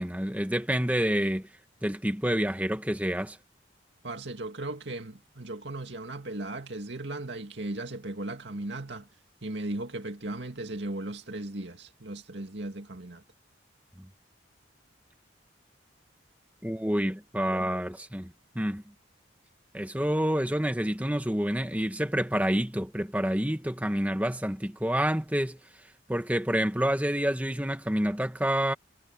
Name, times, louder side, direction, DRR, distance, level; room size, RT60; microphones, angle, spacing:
voice 1, 0.0-1.5 1.8-3.4 16.6-18.3 18.5-18.8 19.7-25.6 26.1-28.7, equal, 10° right, 1.5 m, -28 dB
voice 2, 4.0-9.1 9.4-13.2, right 2 dB, 65° right, 2.3 m, -37 dB
head